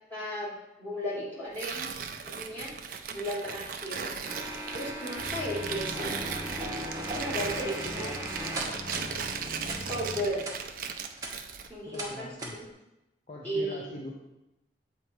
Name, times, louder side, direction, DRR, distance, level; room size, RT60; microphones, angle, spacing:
voice 1, 0.1-0.5 0.8-1.9 2.2-2.7 3.1-4.1 4.7-6.2 7.1-8.3 9.9-10.5 11.7-12.7 13.4-13.9, equal, 10° left, -9 dB, 2.1 m, -35 dB
Tearing, 1.5-11.7, right 6 dB, 50° right, 0.4 m, -37 dB
sound 1, 4.2-9.1 9.6-9.8 10.4-10.6 11.0-11.3 11.9-12.1 12.4-12.6, right 1 dB, 20° right, 0.9 m, -38 dB
sound 2, 5.2-10.3, left 1 dB, 70° left, 1.1 m, -42 dB
voice 2, 11.9-12.6 13.3-14.1, left 1 dB, 40° left, -2 dB, 0.5 m, -42 dB
7.4 x 2.9 x 4.5 m, 0.95 s
head